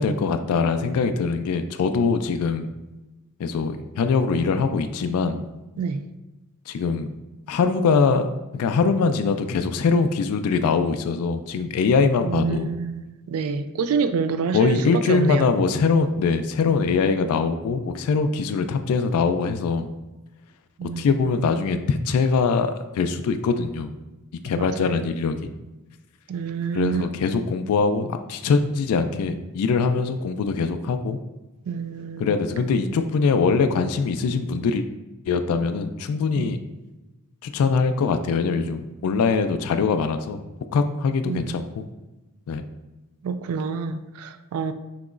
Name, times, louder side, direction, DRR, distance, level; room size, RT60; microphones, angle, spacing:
voice 1, 0.0-2.7 3.4-5.4 6.7-7.1 7.5-8.3 8.5-12.7 14.5-19.9 21.0-23.9 24.4-25.5 26.7-31.2 32.2-34.8 35.3-36.6 37.4-40.4 40.7-41.9 42.5-42.6, left 5 dB, 75° left, 0.3 m, -22 dB
voice 2, 12.3-15.5 20.8-21.7 24.6-24.9 26.3-27.0 31.7-32.3 36.3-36.5 41.3-41.5 43.2-44.7, right 5 dB, 70° right, 0.3 m, -27 dB
5.9 x 2.9 x 2.5 m
head